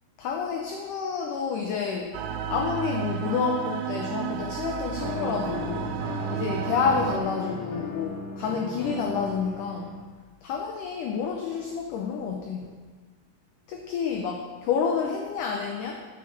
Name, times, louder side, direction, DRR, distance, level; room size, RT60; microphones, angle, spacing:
voice 1, 0.2-2.2 2.5-6.0 6.3-10.0 10.4-12.7 13.7-16.1, left 6 dB, 90° left, 3 dB, 1.8 m, -29 dB
sound 1, 2.1-7.2, right 9 dB, 80° right, 2.1 m, -32 dB
sound 2, 5.0-10.0, left 3 dB, 30° left, 1.8 m, -36 dB
8.0 x 6.4 x 5.7 m, 1.4 s
omnidirectional pair, 4.5 m